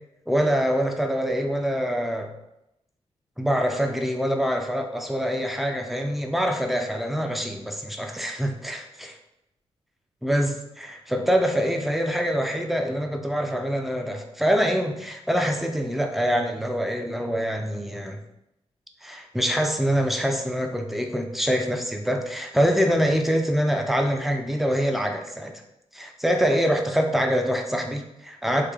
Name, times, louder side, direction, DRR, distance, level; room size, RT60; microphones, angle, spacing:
voice 1, 0.3-2.3 3.4-9.1 10.2-18.2 19.0-25.6 25.9-28.7, equal, ahead, 4 dB, 0.4 m, -25 dB
3.3 x 2.1 x 3.5 m, 0.85 s
cardioid pair, 80°, 12 cm